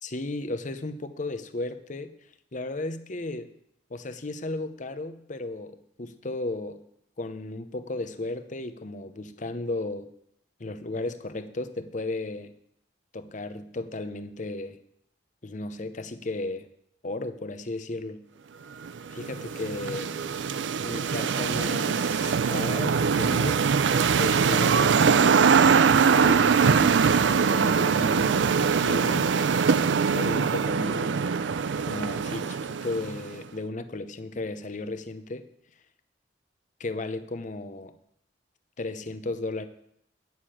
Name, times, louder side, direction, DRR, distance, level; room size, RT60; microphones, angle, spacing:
voice 1, 0.0-2.1 2.5-3.5 3.9-6.8 7.2-10.1 10.6-12.5 13.1-14.8 15.4-16.7 17.0-18.2 19.1-20.1 20.8-23.6 24.1-25.4 26.2-28.5 28.8-29.3 30.1-31.3 31.8-35.4 36.8-37.9 38.8-39.7, left 2 dB, 45° left, 11 dB, 0.8 m, -34 dB
sound 1, 18.8-33.3, right 6 dB, 90° right, 0.4 m, -23 dB
9.6 x 6.6 x 8.7 m, 0.72 s
head